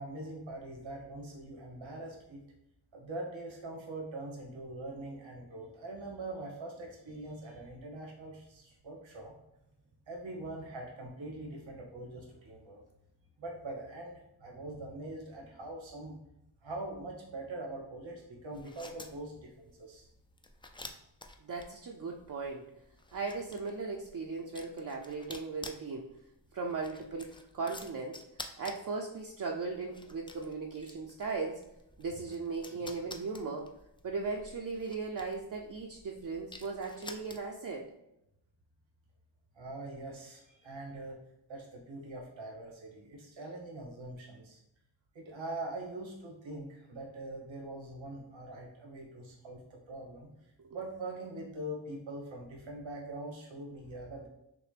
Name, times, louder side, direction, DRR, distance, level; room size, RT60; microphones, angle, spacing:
voice 1, 0.0-2.4 2.9-9.3 10.1-12.8 13.4-16.2 16.6-20.1 39.5-41.2 41.5-44.6 45.1-50.3 50.7-54.3, right 2 dB, 85° right, -1 dB, 1.2 m, -43 dB
sound 1, 18.5-37.7, left 2 dB, 10° left, 0.3 m, -51 dB
voice 2, 21.4-22.6 23.1-26.1 26.5-28.2 28.6-31.6 32.0-33.7 34.0-37.9 50.6-50.8, right 4 dB, 45° right, 0 dB, 0.5 m, -37 dB
5.9 x 2.1 x 3.3 m, 0.85 s
wide cardioid pair, 65°, 45 cm